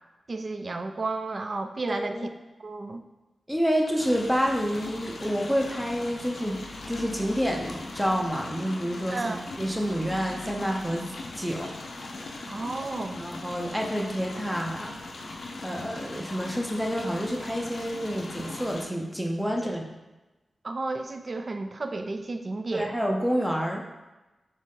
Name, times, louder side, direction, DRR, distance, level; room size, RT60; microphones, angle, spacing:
voice 1, 0.3-2.3 2.6-3.0 9.1-9.5 12.5-13.2 19.6-19.7 20.6-22.9, right 3 dB, 50° right, 7 dB, 0.4 m, -32 dB
voice 2, 1.9-2.3 3.5-6.6 6.9-11.1 11.4-11.7 13.1-15.0 15.6-19.8 22.7-23.8, equal, 5° right, 0 dB, 0.6 m, -28 dB
sound 1, 4.0-18.9, left 2 dB, 80° left, 0.5 m, -40 dB
4.0 x 3.1 x 3.7 m, 1.1 s
cardioid pair, 60°, 0 cm